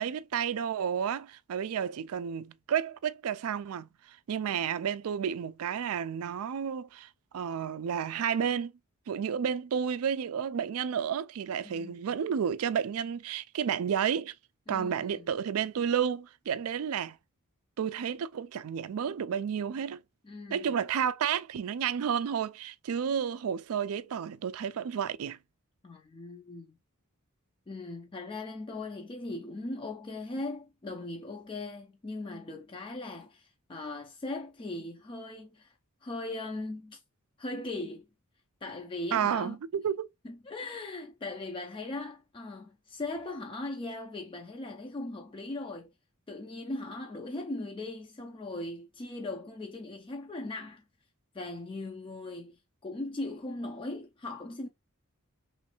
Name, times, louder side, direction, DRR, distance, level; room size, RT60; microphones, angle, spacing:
voice 1, 0.0-8.7 9.1-14.3 14.7-17.2 17.8-20.0 20.5-25.4 39.1-40.1, right 8 dB, 70° right, 0.4 m, -31 dB
voice 2, 11.6-12.0 14.7-15.3 20.2-20.7 25.8-26.7 27.7-35.7 36.0-37.0 37.4-38.1 38.6-39.6 40.2-45.9 46.3-50.8 51.3-54.7, left 2 dB, 25° left, 0.4 m, -39 dB
3.2 x 3.1 x 2.9 m
head